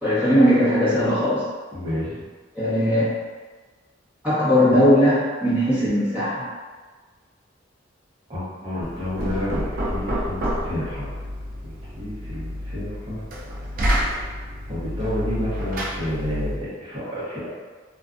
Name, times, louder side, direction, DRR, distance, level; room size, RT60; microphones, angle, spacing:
voice 1, 0.0-1.5 2.5-3.2 4.2-6.4, equal, 10° right, -13 dB, 1.1 m, -19 dB
voice 2, 1.7-2.2 8.3-11.1 11.6-13.2 14.7-17.5, left 1 dB, 30° right, -9 dB, 0.8 m, -30 dB
Knock, 8.8-16.7, equal, 45° right, 0.4 m, -29 dB
2.5 x 2.3 x 2.4 m, 1.4 s
head